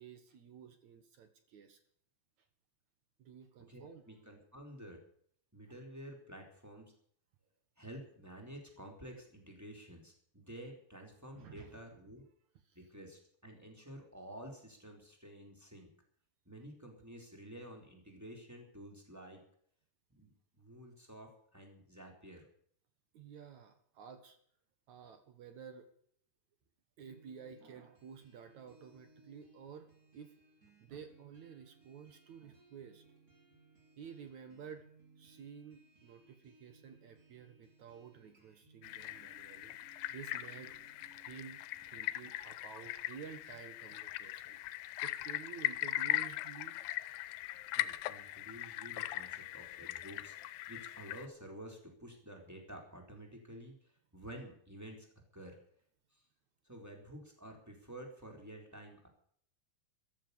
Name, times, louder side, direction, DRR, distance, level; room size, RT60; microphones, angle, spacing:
voice 1, 0.0-1.8 3.2-4.0 11.3-11.8 12.7-12.8 23.1-24.4 24.9-25.9 27.0-29.9 30.1-30.3 30.8-33.0 34.0-34.8 35.2-39.7 40.1-40.7 41.3-41.6 41.9-46.8, right 7 dB, 60° right, 8 dB, 2.3 m, -52 dB
voice 2, 3.7-5.0 5.5-6.9 7.8-12.2 12.7-15.9 16.5-19.4 20.1-22.5 47.7-50.4 50.7-55.1 55.3-55.6 56.1-56.2 56.6-59.1, right 1 dB, 5° right, 1 dB, 3.6 m, -51 dB
sound 1, 27.0-42.4, right 2 dB, 20° right, 3.8 m, -65 dB
sound 2, 38.8-51.3, left 16 dB, 85° left, 2.8 m, -40 dB
14.0 x 13.0 x 6.9 m, 0.62 s
omnidirectional pair, 4.7 m